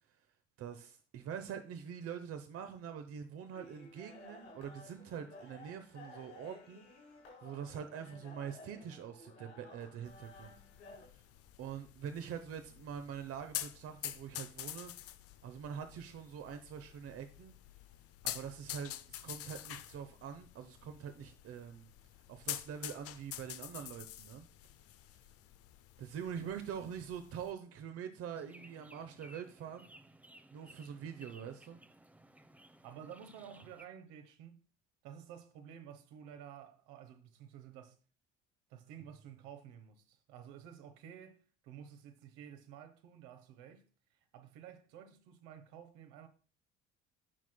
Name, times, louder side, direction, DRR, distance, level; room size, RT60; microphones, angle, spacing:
voice 1, 0.6-10.5 11.6-14.9 15.4-17.5 18.2-21.9 22.3-24.5 26.0-29.9 30.5-31.8, right 8 dB, 40° right, 0.9 m, -44 dB
sound 1, 3.5-11.1, left 2 dB, 75° left, 4.0 m, -55 dB
sound 2, 10.1-27.5, left 13 dB, 45° left, 0.6 m, -47 dB
sound 3, 28.3-33.9, right 1 dB, 5° right, 0.7 m, -59 dB
voice 2, 32.8-34.6 35.0-38.0 38.7-43.9 44.3-46.3, right 8 dB, 60° right, 1.2 m, -52 dB
15.0 x 6.0 x 2.2 m
figure-of-eight pair, 55°, 34 cm